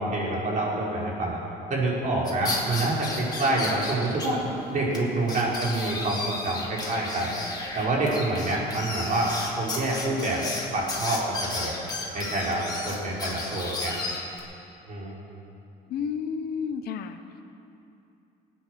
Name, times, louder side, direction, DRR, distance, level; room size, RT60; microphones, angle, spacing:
voice 1, 0.0-1.4 1.7-4.4 4.7-7.4 7.7-10.4 10.7-11.7 12.1-13.9 14.9-15.1, right 2 dB, 50° right, -4 dB, 4.4 m, -27 dB
sound 1, 2.2-4.3 4.6-4.7 4.9-5.0 5.3-14.4, left 3 dB, 25° left, 2.6 m, -34 dB
voice 2, 15.9-17.2, left 6 dB, 70° left, 8 dB, 1.0 m, -31 dB
19.0 x 9.0 x 6.4 m, 2.7 s
cardioid pair, 110°, 17 cm